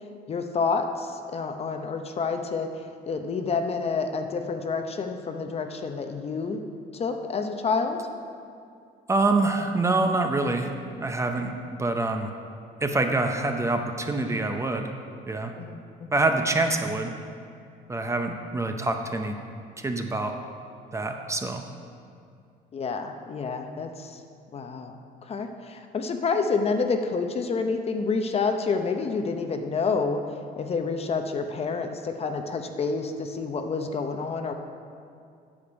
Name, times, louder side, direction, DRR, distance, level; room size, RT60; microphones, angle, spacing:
voice 1, 0.3-2.7 3.1-6.6 6.9-8.0 11.4-11.5 15.6-15.8 22.7-24.2 24.5-30.2 30.6-34.5, left 4 dB, 35° left, 6 dB, 0.7 m, -28 dB
voice 2, 9.1-10.7 11.0-11.5 11.8-12.3 12.8-14.9 15.3-15.5 16.1-17.1 17.9-19.4 19.8-20.3 20.9-21.6, right 2 dB, 15° right, 5 dB, 0.7 m, -25 dB
8.7 x 6.4 x 5.2 m, 2.4 s
cardioid pair, 110°, 17 cm